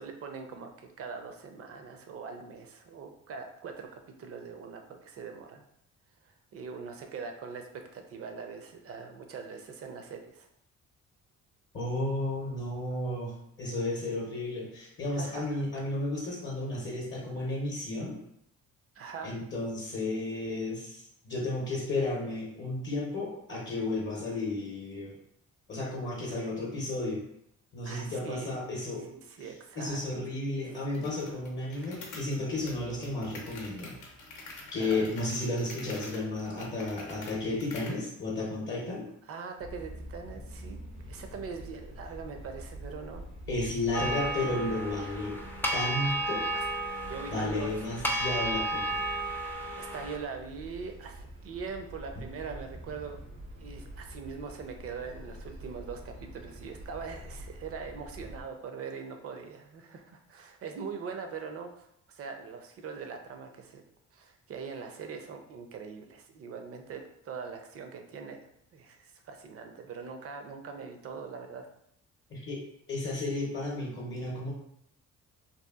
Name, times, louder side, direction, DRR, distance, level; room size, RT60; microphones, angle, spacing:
voice 1, 0.0-3.9 4.2-5.6 6.2-10.5 15.1-15.6 18.9-19.3 27.8-28.6 29.1-30.1 30.8-30.9 31.3-31.4 31.8-31.9 34.8-35.1 39.2-40.8 41.1-43.3 43.7-43.8 46.0-46.2 46.5-46.7 47.0-47.7 49.8-53.2 53.5-63.8 64.1-71.7, right 5 dB, 50° right, 5 dB, 0.5 m, -42 dB
voice 2, 11.7-13.3 13.6-18.2 19.2-25.2 25.7-27.2 27.7-29.1 29.8-34.0 34.7-39.1 43.5-45.3 45.7-46.4 47.3-49.0 72.3-72.6 72.9-74.5, left 2 dB, 40° left, -3 dB, 0.7 m, -33 dB
sound 1, 30.9-38.0, left 3 dB, 85° left, 0.6 m, -47 dB
sound 2, 39.6-58.4, equal, 85° right, 0.7 m, -46 dB
sound 3, 43.9-50.2, right 1 dB, 5° left, 0.3 m, -33 dB
2.8 x 2.3 x 2.3 m, 0.74 s
cardioid pair, 90°, 30 cm